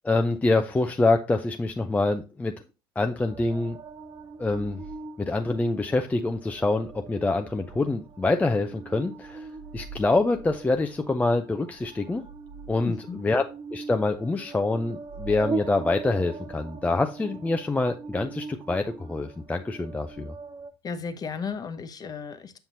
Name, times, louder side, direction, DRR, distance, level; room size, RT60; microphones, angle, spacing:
voice 1, 0.0-2.5 3.0-3.8 4.4-4.8 5.2-9.5 9.7-12.2 12.7-13.4 13.7-20.3, left 2 dB, 10° left, 0.5 m, -25 dB
sound 1, 3.3-20.7, right 4 dB, 25° right, 0.7 m, -41 dB
voice 2, 12.8-13.2 20.8-22.6, left 5 dB, 30° left, 0.9 m, -34 dB
7.4 x 5.7 x 2.7 m
hypercardioid pair, 80°, 13 cm